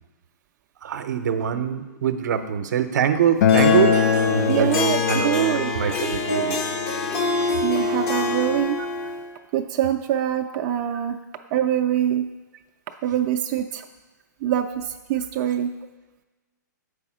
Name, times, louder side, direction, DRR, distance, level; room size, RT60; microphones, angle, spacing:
voice 1, 0.8-4.0 4.3-4.7 5.1-6.6, right 8 dB, 70° right, 10 dB, 0.7 m, -24 dB
Acoustic guitar, 3.4-8.6, left 9 dB, 60° left, 0.4 m, -24 dB
Harp, 3.5-9.3, left 2 dB, 45° left, 0.9 m, -26 dB
voice 2, 4.5-5.7 7.6-8.8 9.5-11.2 11.5-12.3 13.0-13.8 14.4-15.7, right 10 dB, 35° right, 4 dB, 0.4 m, -24 dB
6.9 x 4.8 x 4.9 m, 1.2 s
hypercardioid pair, 135°, 10 cm